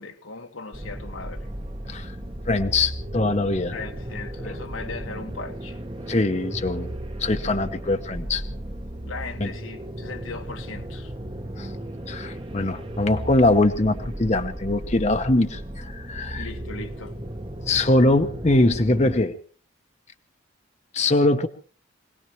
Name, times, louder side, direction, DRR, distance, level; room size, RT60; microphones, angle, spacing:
voice 1, 0.0-1.5 3.7-5.8 9.0-11.1 16.3-17.1, left 4 dB, 80° left, 1.7 m, -38 dB
sound 1, 0.7-19.2, right 1 dB, 25° right, 1.0 m, -35 dB
voice 2, 2.5-3.8 6.1-6.9 7.2-8.4 9.4-9.5 11.6-11.7 12.1-16.5 17.7-19.3 20.9-21.5, left 2 dB, 35° left, 0.9 m, -22 dB
25.0 x 18.5 x 3.1 m
head